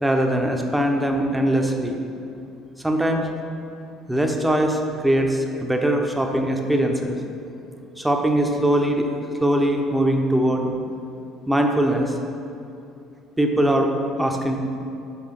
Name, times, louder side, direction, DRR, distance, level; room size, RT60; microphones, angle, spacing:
voice 1, 0.0-2.0 2.8-3.3 4.1-7.2 8.0-9.1 9.4-10.7 11.5-12.1 13.4-13.9 14.2-14.6, right 1 dB, 10° right, 3 dB, 1.0 m, -21 dB
5.9 x 5.4 x 6.7 m, 2.6 s
figure-of-eight pair, 55°, 0 cm